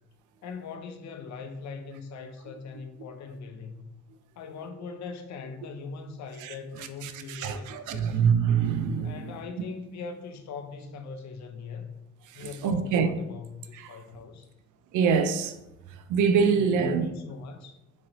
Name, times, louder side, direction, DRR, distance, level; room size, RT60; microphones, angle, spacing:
voice 1, 0.4-3.9 4.4-8.2 9.0-11.9 12.3-14.5 16.4-17.8, left 4 dB, 65° left, 0.5 m, -41 dB
voice 2, 7.0-9.3 12.3-13.1 13.7-14.0 14.9-15.6 16.1-17.1, right 6 dB, 80° right, 0.5 m, -25 dB
3.7 x 3.0 x 2.9 m
cardioid pair, 90°, 30 cm